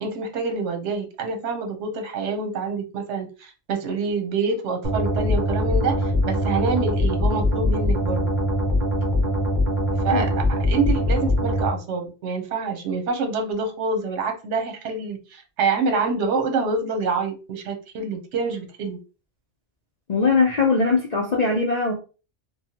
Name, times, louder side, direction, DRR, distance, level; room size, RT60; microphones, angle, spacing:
voice 1, 0.0-8.2 10.0-19.0, right 4 dB, 80° right, 4 dB, 1.0 m, -26 dB
sound 1, 4.8-11.7, left 1 dB, 45° right, 1.0 m, -22 dB
voice 2, 20.1-21.9, left 4 dB, 50° left, -1 dB, 0.5 m, -20 dB
3.1 x 2.2 x 2.8 m, 0.32 s
omnidirectional pair, 1.2 m